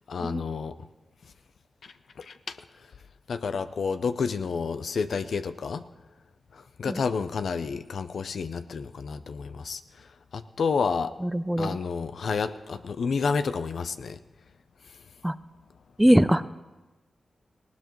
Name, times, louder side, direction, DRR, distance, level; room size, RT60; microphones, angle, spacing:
voice 1, 0.1-0.8 1.8-2.6 3.3-5.9 6.5-10.1 10.3-11.1 11.6-14.2, left 5 dB, 75° left, 11 dB, 0.6 m, -30 dB
voice 2, 11.2-11.8 15.2-15.4 16.0-16.4, equal, 10° right, 14 dB, 0.6 m, -22 dB
19.0 x 16.5 x 3.1 m, 1.2 s
cardioid pair, 50°, 0 cm